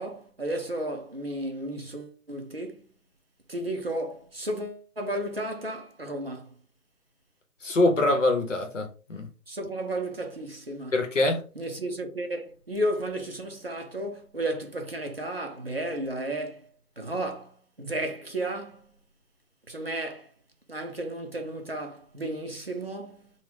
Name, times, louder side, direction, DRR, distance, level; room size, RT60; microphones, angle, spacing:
voice 1, 0.0-2.9 3.5-6.5 9.5-11.0 11.6-16.7 17.0-18.8 19.7-20.3 20.7-23.3, right 1 dB, 40° right, 0.5 m, -33 dB
voice 2, 7.6-9.3 10.9-11.4, left 2 dB, 50° left, 0.9 m, -24 dB
3.8 x 2.3 x 2.8 m
figure-of-eight pair, 150°, 48 cm